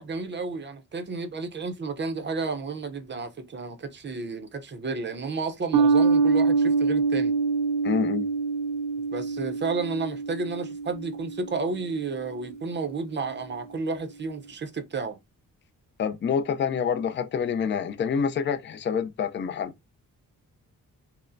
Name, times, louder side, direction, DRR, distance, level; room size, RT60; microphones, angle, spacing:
voice 1, 0.0-7.4 9.1-15.2, right 4 dB, 35° right, 0.6 m, -32 dB
sound 1, 5.7-12.5, right 4 dB, 65° right, 0.7 m, -25 dB
voice 2, 7.8-8.3 16.0-19.7, left 7 dB, 35° left, 0.4 m, -27 dB
5.4 x 2.0 x 2.5 m
wide cardioid pair, 160°, 34 cm